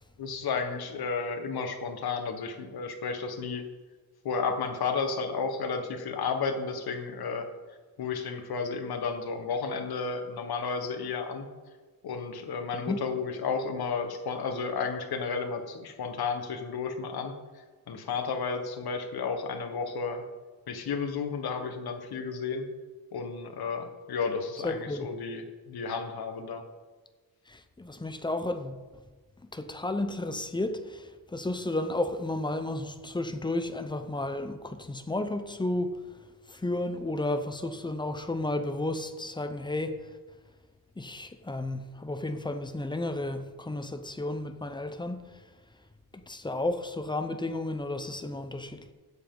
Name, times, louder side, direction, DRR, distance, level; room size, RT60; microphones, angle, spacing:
voice 1, 0.2-3.6 4.2-7.5 8.0-11.5 12.0-17.3 17.9-20.2 20.7-22.7 23.1-26.6, left 5 dB, 75° left, 1.5 m, -32 dB
voice 2, 24.6-25.1 27.5-28.8 29.5-35.9 36.5-40.0 41.0-45.4 46.1-48.9, left 2 dB, 10° left, 0.7 m, -32 dB
16.0 x 8.2 x 3.9 m
wide cardioid pair, 145°, 38 cm